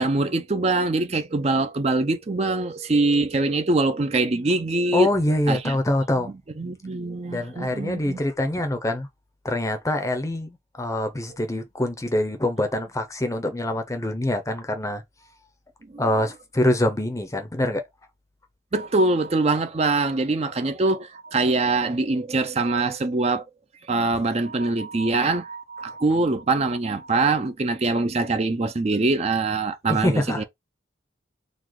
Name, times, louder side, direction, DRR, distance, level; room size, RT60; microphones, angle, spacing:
voice 1, 0.0-5.1 5.5-5.7 6.6-8.2 15.9-16.0 18.7-23.4 23.9-30.4, right 2 dB, 35° right, 0.5 m, -23 dB
voice 2, 4.9-6.3 7.3-9.1 9.4-15.0 16.0-17.8 29.9-30.4, left 1 dB, 15° left, 0.6 m, -25 dB
3.9 x 2.4 x 4.6 m
head